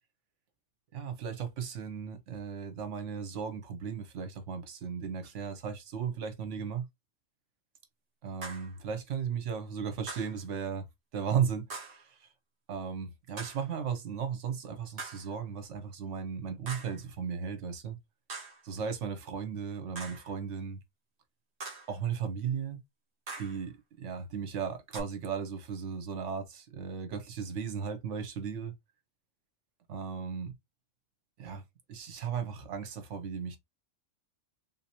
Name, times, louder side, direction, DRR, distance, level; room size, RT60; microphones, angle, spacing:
voice 1, 0.9-6.9 8.2-10.8 11.1-12.3 12.7-18.0 18.6-20.8 21.9-22.8 23.4-28.7 29.9-30.5 31.4-31.6 31.9-33.6, right 7 dB, 70° right, 1.1 m, -36 dB
sound 1, 8.4-8.8 10.1-10.4 11.7-12.1 13.4-13.7 15.0-15.3 16.7-17.0 18.3-18.7 20.0-20.3 21.6-22.0 23.3-23.7 24.9-25.0, right 3 dB, 45° right, 1.2 m, -42 dB
3.6 x 2.8 x 2.8 m
omnidirectional pair, 1.3 m